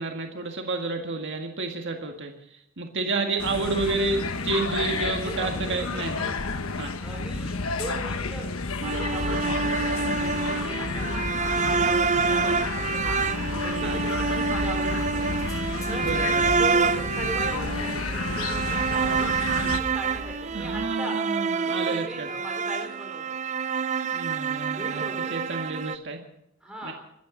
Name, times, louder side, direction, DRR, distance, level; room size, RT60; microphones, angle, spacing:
voice 1, 0.0-6.2 6.8-6.9 13.8-14.0 15.9-16.6 20.5-22.3 24.1-25.0 25.3-26.2 26.8-26.9, right 3 dB, 60° right, 3 dB, 1.9 m, -30 dB
sound 1, 3.4-19.8, left 3 dB, 80° left, 1.2 m, -31 dB
voice 2, 4.7-6.1 7.0-8.5 8.8-15.4 15.9-16.1 16.5-19.3 19.6-21.2 21.7-23.4 24.7-25.4 26.6-26.9, right 1 dB, 5° right, -1 dB, 3.4 m, -39 dB
sound 2, 8.8-26.0, right 5 dB, 35° right, 0.5 m, -27 dB
sound 3, 13.3-20.9, left 1 dB, 15° left, 2.1 m, -42 dB
26.5 x 13.5 x 3.9 m, 0.80 s
head